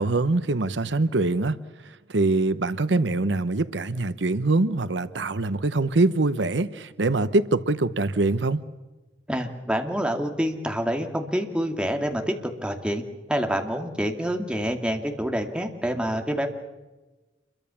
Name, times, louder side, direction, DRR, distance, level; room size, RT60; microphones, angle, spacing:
voice 1, 0.0-8.6, right 2 dB, 75° right, 0.9 m, -24 dB
voice 2, 9.3-13.0 13.3-16.5, equal, 5° right, 2.3 m, -27 dB
28.0 x 22.5 x 7.1 m
head